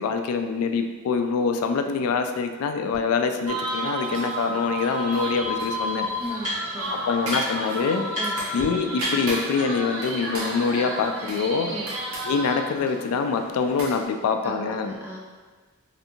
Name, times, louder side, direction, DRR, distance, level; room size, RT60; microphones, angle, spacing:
voice 1, 0.0-6.1 7.1-11.7 12.3-15.0, left 5 dB, 75° left, 10 dB, 0.3 m, -25 dB
sound 1, 2.9-3.0 3.7-3.8 5.0-5.1 5.4-6.9 7.3-7.7 8.1-8.3 8.6-8.7 9.0-10.0, equal, 35° right, 1.5 m, -33 dB
sound 2, 3.5-14.0, right 1 dB, 75° right, 0.8 m, -31 dB
voice 2, 6.2-7.1 8.2-8.4 11.7-11.9 14.4-15.2, equal, 10° right, -4 dB, 0.4 m, -37 dB
3.3 x 2.6 x 2.7 m, 1.4 s
head